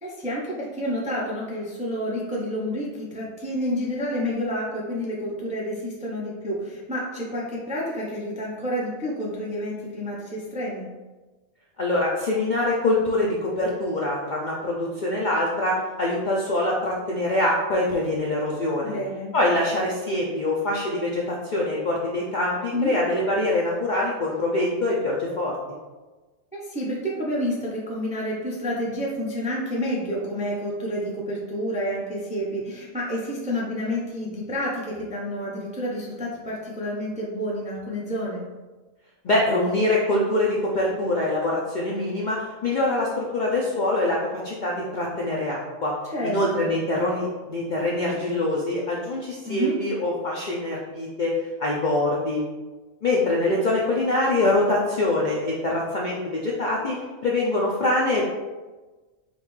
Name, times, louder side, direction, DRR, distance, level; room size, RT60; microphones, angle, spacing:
voice 1, 0.0-10.9 18.8-19.3 22.7-23.0 26.5-38.4 46.1-46.7 49.4-49.8, equal, 10° right, -4 dB, 0.3 m, -29 dB
voice 2, 11.8-18.9 19.3-25.6 39.2-44.2 44.4-45.9 46.2-52.4 53.0-57.0 57.2-58.3, left 2 dB, 60° left, -4 dB, 0.5 m, -24 dB
5.2 x 2.4 x 3.1 m, 1.2 s
omnidirectional pair, 1.4 m